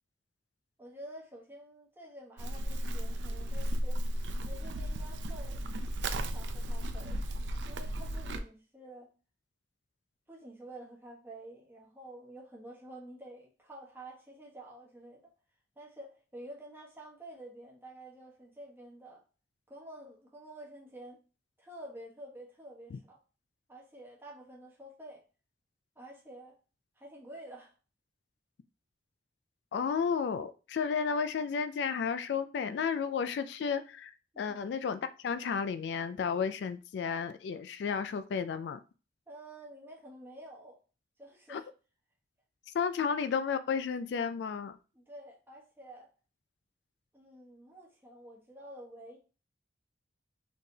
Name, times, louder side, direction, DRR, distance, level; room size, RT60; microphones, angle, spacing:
voice 1, 0.8-4.0 4.4-5.6 6.1-7.2 7.7-9.1 10.3-15.3 15.8-19.2 19.7-21.2 21.6-23.2 23.7-25.2 26.0-26.6 27.0-27.7 34.3-34.6 39.3-40.8 41.2-41.7 43.0-43.1 44.9-46.1 47.1-49.2, right 1 dB, 15° right, 1.1 m, -49 dB
Livestock farm animals working animals, 2.4-8.4, right 1 dB, 90° right, 0.4 m, -34 dB
voice 2, 29.7-38.8 41.5-41.6 42.7-44.8, left 6 dB, 75° left, 0.3 m, -32 dB
4.1 x 3.3 x 2.7 m
head